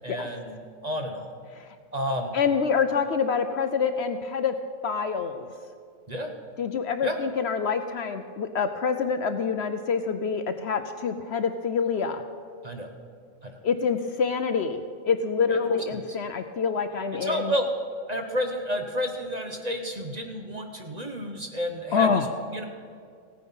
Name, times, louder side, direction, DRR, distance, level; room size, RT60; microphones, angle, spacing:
voice 1, 0.0-1.3 1.9-2.3 6.1-6.3 7.0-7.2 12.6-12.9 13.4-13.6 15.5-16.0 17.1-17.7 18.1-22.3 22.5-22.6, equal, 35° right, 4 dB, 0.9 m, -31 dB
voice 2, 2.3-4.5 4.8-5.5 6.6-12.2 13.6-17.5 21.9-22.3, left 6 dB, 60° left, 8 dB, 0.8 m, -26 dB
16.0 x 9.5 x 5.5 m, 2.2 s
omnidirectional pair, 1.4 m